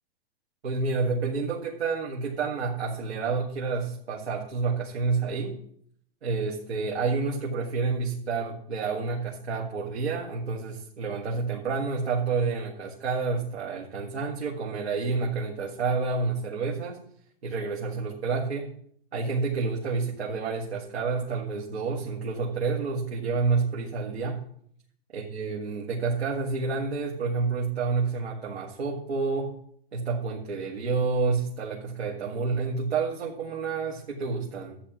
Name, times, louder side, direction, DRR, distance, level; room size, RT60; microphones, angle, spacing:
voice 1, 0.6-5.6 6.2-17.0 17.4-18.7 19.1-24.4 25.1-29.5 29.9-34.8, right 4 dB, 85° right, -2 dB, 1.8 m, -29 dB
13.5 x 8.9 x 3.0 m, 0.64 s
hypercardioid pair, 120°, 31 cm